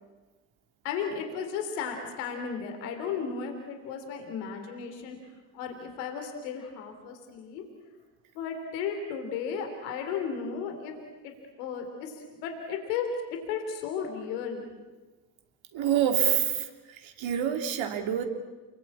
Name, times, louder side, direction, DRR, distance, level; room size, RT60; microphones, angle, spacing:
voice 1, 0.8-5.2 5.5-7.6 8.4-10.9 11.2-11.3 11.6-14.7, left 6 dB, 80° left, 4 dB, 3.4 m, -34 dB
voice 2, 15.7-16.7 17.0-18.2, right 9 dB, 65° right, 6 dB, 3.2 m, -26 dB
29.0 x 22.5 x 8.7 m, 1.2 s
hypercardioid pair, 45°, 49 cm